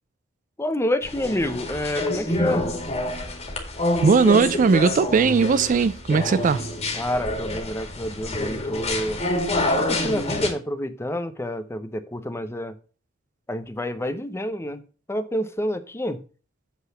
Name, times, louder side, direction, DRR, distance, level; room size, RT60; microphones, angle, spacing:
voice 1, 0.6-2.8 6.9-9.2 9.8-12.7 13.5-14.8 15.1-16.2, left 1 dB, 15° left, 0.7 m, -28 dB
sound 1, 1.0-10.5, left 1 dB, 35° left, 2.0 m, -27 dB
voice 2, 4.0-6.7, right 5 dB, 40° right, 0.3 m, -18 dB
8.3 x 4.0 x 6.9 m
head